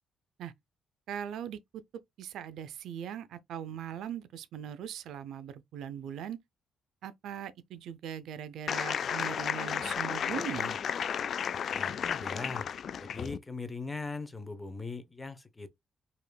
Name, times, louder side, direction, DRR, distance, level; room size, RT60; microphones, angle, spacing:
voice 1, 1.1-1.6 2.2-6.4 7.0-10.8, right 9 dB, 80° right, 0.4 m, -40 dB
sound 1, 8.7-13.4, left 8 dB, 60° left, 0.3 m, -33 dB
voice 2, 11.7-12.7 13.0-15.7, left 3 dB, 20° left, 0.8 m, -40 dB
5.0 x 2.8 x 2.2 m
cardioid pair, 90°, 0 cm